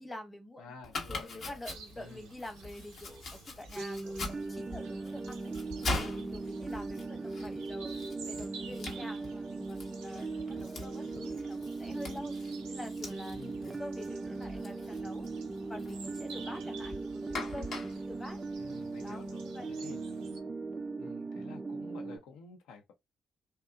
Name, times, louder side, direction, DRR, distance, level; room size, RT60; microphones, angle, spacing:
voice 1, 0.0-0.8 1.1-8.0 8.3-15.3 15.7-18.4 19.0-20.0, left 1 dB, 30° left, 0.9 m, -47 dB
voice 2, 0.6-1.6 2.0-2.3 13.3-13.8 18.6-20.2 21.0-22.9, left 4 dB, 80° left, 0.5 m, -51 dB
Domestic sounds home sounds, 0.8-19.3, left 2 dB, 60° left, 0.9 m, -43 dB
sound 1, 1.7-20.4, right 5 dB, 85° right, 0.5 m, -52 dB
sound 2, 3.7-22.2, right 3 dB, 25° right, 0.3 m, -39 dB
2.7 x 2.2 x 2.2 m
hypercardioid pair, 45°, 0 cm